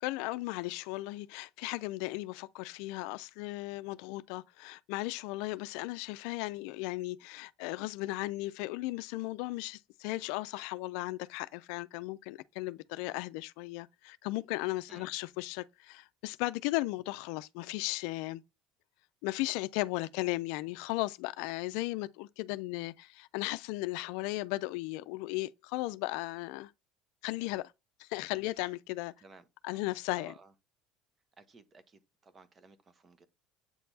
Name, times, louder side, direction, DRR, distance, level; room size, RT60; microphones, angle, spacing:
voice 1, 0.0-18.4 19.2-26.7 27.2-27.7 28.0-29.1 29.6-30.3, left 20 dB, 75° left, 0.3 m, -36 dB
voice 2, 29.2-29.8 30.2-30.5 31.4-33.3, right 3 dB, 25° right, 0.9 m, -57 dB
8.3 x 4.4 x 2.7 m
supercardioid pair, 115°, 0 cm